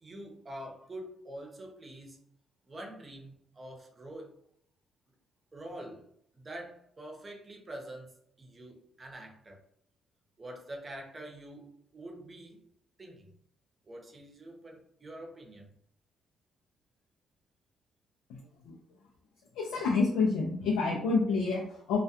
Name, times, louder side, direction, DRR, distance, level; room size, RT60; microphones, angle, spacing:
voice 1, 0.0-2.2 2.7-4.3 5.5-6.1 6.3-9.6 10.4-12.6 13.0-13.3 13.9-15.7, right 1 dB, 35° right, 2 dB, 0.7 m, -45 dB
voice 2, 19.5-22.0, left 4 dB, 90° left, -1 dB, 0.4 m, -28 dB
2.3 x 2.1 x 2.7 m, 0.71 s
supercardioid pair, 70°, 0 cm